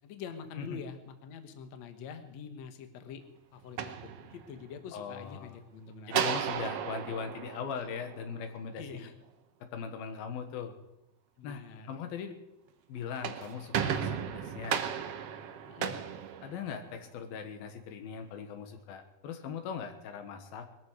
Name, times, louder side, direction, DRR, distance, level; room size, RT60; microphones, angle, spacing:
voice 1, 0.0-3.2 3.5-6.3 8.7-9.1 11.4-12.0 15.7-16.0, left 6 dB, 60° left, 7 dB, 2.2 m, -45 dB
sound 1, 3.6-4.8 6.1-8.6 13.0-17.1, right 8 dB, 70° right, 1.4 m, -35 dB
voice 2, 4.9-5.6 6.1-9.0 9.6-10.8 11.4-12.4 12.9-14.8 16.4-20.7, left 6 dB, 85° left, 6 dB, 3.3 m, -40 dB
21.0 x 14.0 x 4.9 m, 0.91 s
omnidirectional pair, 4.2 m